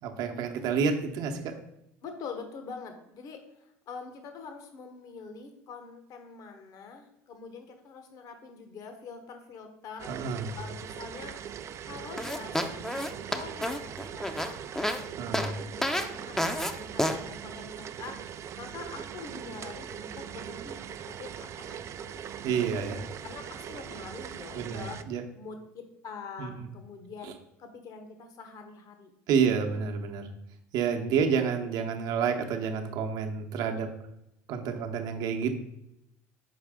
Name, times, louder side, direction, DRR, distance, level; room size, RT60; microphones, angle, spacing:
voice 1, 0.0-1.5 10.1-10.5 15.2-15.5 22.4-23.0 24.5-25.2 26.4-26.5 29.3-30.3 30.7-33.9 34.5-35.5, right 6 dB, 60° right, 4 dB, 0.8 m, -29 dB
voice 2, 2.0-10.1 10.5-11.4 11.8-15.2 15.4-22.5 23.2-25.0 25.3-29.1, left 5 dB, 50° left, 6 dB, 1.0 m, -45 dB
sound 1, 10.0-25.0, right 9 dB, 40° right, 0.4 m, -41 dB
sound 2, 12.2-15.0 15.3-15.5 15.8-16.1 16.4-16.7 17.0-17.2, left 1 dB, 5° left, 0.6 m, -29 dB
5.8 x 4.7 x 3.6 m, 0.84 s
hypercardioid pair, 80°, 8 cm